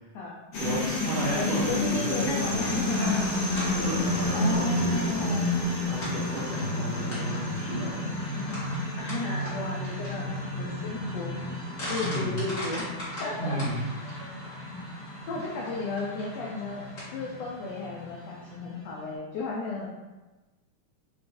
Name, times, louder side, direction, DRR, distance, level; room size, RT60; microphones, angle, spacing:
sound 1, 0.5-19.0, left 2 dB, 65° left, 1.8 m, -31 dB
voice 1, 0.6-3.3 3.5-8.6 11.8-12.6 13.3-13.9 14.7-14.9, right 1 dB, 75° right, -4 dB, 1.7 m, -33 dB
voice 2, 1.3-3.2 4.3-5.5 6.8-6.9 9.0-10.3 10.6-11.4 11.9-12.9 13.2-13.6 14.0-14.3 15.3-16.9 17.1-19.9, left 3 dB, 85° left, -4 dB, 1.4 m, -34 dB
sound 2, 3.2-18.5, left 1 dB, 45° left, 1.1 m, -41 dB
5.3 x 2.3 x 2.6 m, 1.1 s
omnidirectional pair, 3.5 m